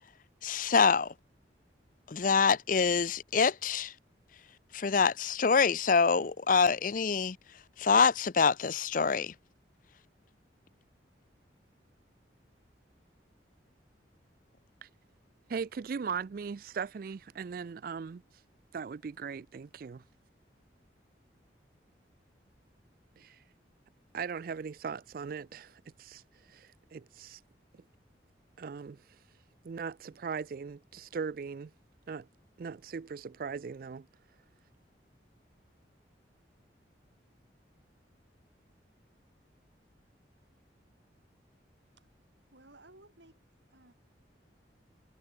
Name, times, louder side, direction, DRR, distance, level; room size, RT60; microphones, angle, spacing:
voice 1, 0.4-1.1 2.1-3.9 4.7-7.4 7.8-9.3, left 5 dB, 45° left, 0.6 m, -25 dB
voice 2, 15.5-18.4 18.7-20.0 23.2-23.4 24.1-27.4 27.7-27.8 28.6-29.2 29.6-31.7 32.1-32.3 32.6-34.1, right 5 dB, 50° right, 0.4 m, -39 dB
voice 3, 42.5-43.4 43.7-43.9, right 2 dB, 75° right, 7.9 m, -57 dB
head